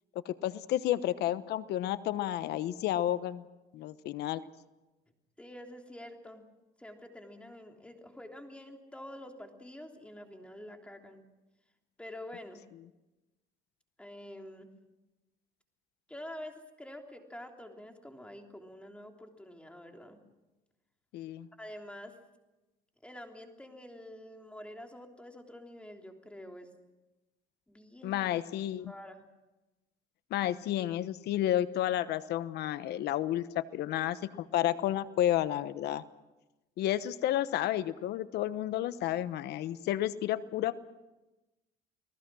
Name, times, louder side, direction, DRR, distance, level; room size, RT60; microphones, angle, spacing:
voice 1, 0.2-3.4 3.7-4.4 21.1-21.5 28.0-28.9 30.3-36.0 36.8-40.8, left 12 dB, 75° left, 14 dB, 1.0 m, -31 dB
voice 2, 5.4-6.5 6.8-11.2 12.0-12.6 14.0-14.7 16.1-20.2 21.6-22.2 23.0-26.7 27.7-28.2 28.9-29.2, left 1 dB, 5° left, 3 dB, 3.3 m, -47 dB
29.5 x 19.5 x 6.3 m, 1.1 s
cardioid pair, 110°, 17 cm